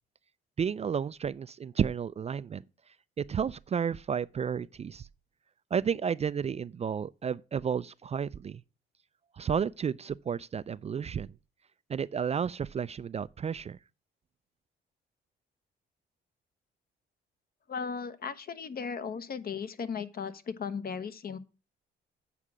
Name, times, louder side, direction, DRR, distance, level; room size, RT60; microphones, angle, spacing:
voice 1, 0.6-2.6 3.2-5.1 5.7-8.6 9.4-11.3 11.9-13.8, right 7 dB, 35° right, 0.3 m, -32 dB
voice 2, 17.7-21.4, left 6 dB, 50° left, 1.0 m, -36 dB
8.3 x 4.9 x 7.4 m
cardioid pair, 90°, 20 cm